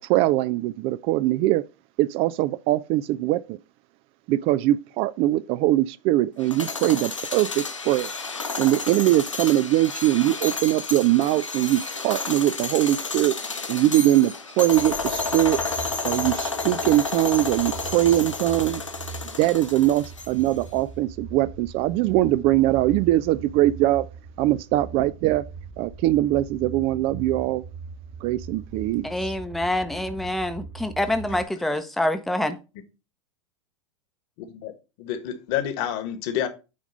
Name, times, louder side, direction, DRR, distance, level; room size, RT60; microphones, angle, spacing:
voice 1, 0.0-1.6 2.0-3.6 4.3-8.1 8.6-13.4 13.7-15.6 16.0-18.8 19.4-24.1 24.4-25.4 25.8-27.6 28.2-29.1, right 15 dB, 40° right, 0.3 m, -22 dB
sound 1, 6.4-20.5, left 4 dB, 90° left, 0.9 m, -31 dB
sound 2, 14.7-31.4, right 4 dB, 65° right, 4.8 m, -40 dB
voice 2, 29.0-32.6, left 1 dB, ahead, 0.7 m, -26 dB
voice 3, 35.0-36.5, left 10 dB, 50° left, 1.4 m, -28 dB
8.6 x 3.6 x 5.1 m
figure-of-eight pair, 90°, 16 cm